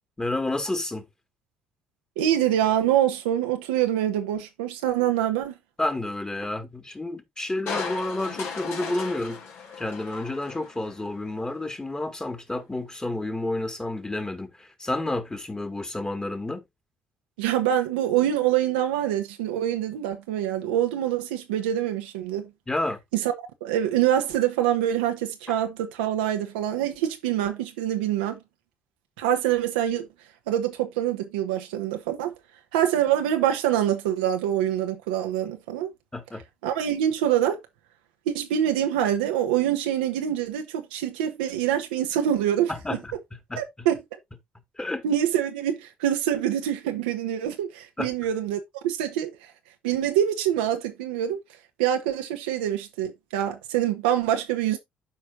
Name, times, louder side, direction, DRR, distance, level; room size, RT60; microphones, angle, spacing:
voice 1, 0.2-1.1 5.8-9.4 9.8-16.6 22.7-23.0 36.1-36.4 42.7-43.2 43.5-43.6 44.8-45.0 48.0-48.1, left 2 dB, 15° left, 1.9 m, -30 dB
voice 2, 2.2-5.6 17.4-22.5 23.1-28.4 29.2-30.1 30.5-32.3 32.7-35.9 36.6-37.6 38.3-43.0 43.5-44.0 45.0-49.5 49.8-51.4 51.8-54.8, right 11 dB, 90° right, 1.1 m, -25 dB
Crushing, 7.7-11.0 11.5-11.6, left 5 dB, 65° left, 2.6 m, -36 dB
12.0 x 4.6 x 2.6 m
hypercardioid pair, 60°, 5 cm